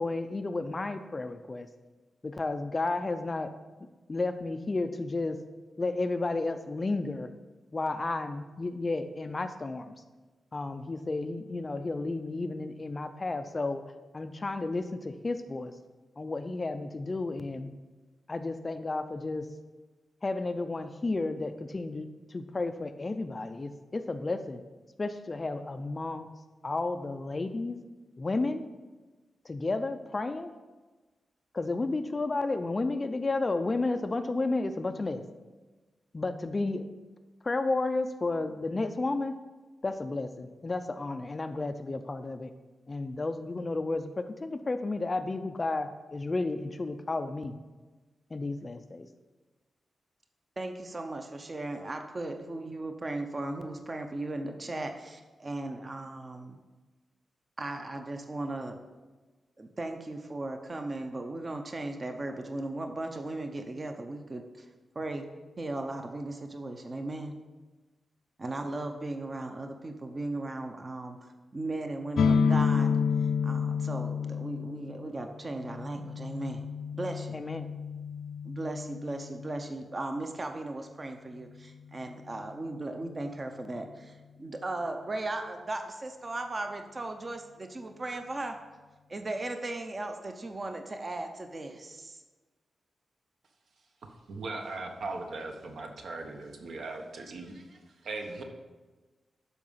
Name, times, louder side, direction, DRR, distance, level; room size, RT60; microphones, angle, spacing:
voice 1, 0.0-1.7 2.2-3.5 4.1-5.4 5.8-7.3 7.7-10.0 10.5-13.8 14.1-15.7 16.2-17.7 18.3-19.5 20.2-24.6 25.0-26.3 26.6-27.8 28.2-28.6 29.4-30.5 31.5-35.2 36.1-36.9 37.4-39.4 39.8-42.5 42.9-47.6 48.3-49.1 77.3-77.7, left 3 dB, 25° left, 9 dB, 0.4 m, -32 dB
voice 2, 50.6-56.6 57.6-58.8 59.6-64.7 64.9-65.3 65.6-67.3 68.4-76.6 77.0-77.4 78.4-88.6 89.1-92.2, right 2 dB, 25° right, 5 dB, 0.7 m, -37 dB
sound 1, 72.2-79.8, left 6 dB, 85° left, 0.5 m, -30 dB
voice 3, 94.3-98.4, right 3 dB, 70° right, 3 dB, 1.3 m, -39 dB
12.5 x 5.0 x 5.6 m, 1.3 s
wide cardioid pair, 175°, 0 cm